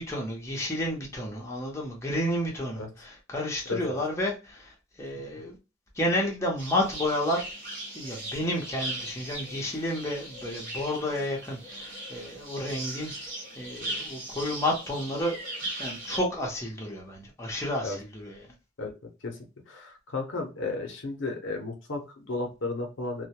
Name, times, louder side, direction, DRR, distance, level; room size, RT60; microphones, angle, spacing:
voice 1, 0.0-5.6 6.0-7.5 7.9-13.3 13.5-15.4 15.8-18.5, left 1 dB, 15° left, 0.7 m, -31 dB
sound 1, 6.6-16.2, right 1 dB, 45° right, 1.0 m, -38 dB
voice 2, 19.7-23.3, left 3 dB, 70° left, 0.6 m, -33 dB
2.2 x 2.1 x 2.7 m
head